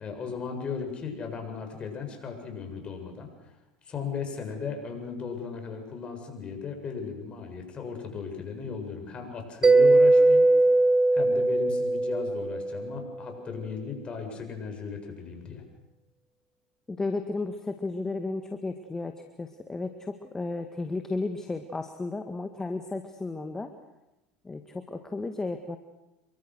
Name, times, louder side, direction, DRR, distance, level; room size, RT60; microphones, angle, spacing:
voice 1, 0.0-3.5 3.8-10.5 11.1-15.6, left 6 dB, 35° left, 4 dB, 7.7 m, -36 dB
Mallet percussion, 9.6-13.1, right 2 dB, 20° right, 1.0 m, -20 dB
voice 2, 16.9-23.7 24.4-25.8, left 3 dB, 15° left, 6 dB, 2.0 m, -33 dB
28.0 x 24.0 x 6.5 m, 0.95 s
hypercardioid pair, 85°, 3 cm